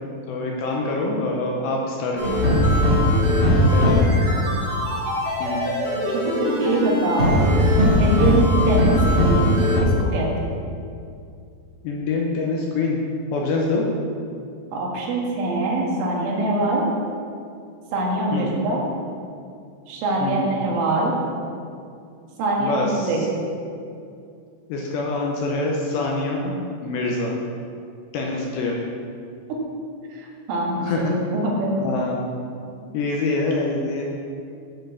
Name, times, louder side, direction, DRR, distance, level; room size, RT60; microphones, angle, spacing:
voice 1, 0.3-2.4 3.7-4.1 5.4-5.6 11.8-13.0 13.3-13.9 18.3-18.6 20.2-20.5 22.6-23.3 24.7-26.6 26.8-27.3 28.1-28.8 30.8-31.1 31.8-32.2 32.9-34.0, left 3 dB, 80° left, -1 dB, 2.7 m, -25 dB
sound 1, 2.2-9.8, left 1 dB, 40° right, 1.4 m, -19 dB
voice 2, 6.1-7.4 8.0-10.3 14.7-16.8 17.9-18.8 19.9-21.2 22.4-23.2 30.2-31.7, right 2 dB, 80° right, -3 dB, 4.1 m, -24 dB
11.5 x 4.5 x 7.0 m, 2.4 s
omnidirectional pair, 5.6 m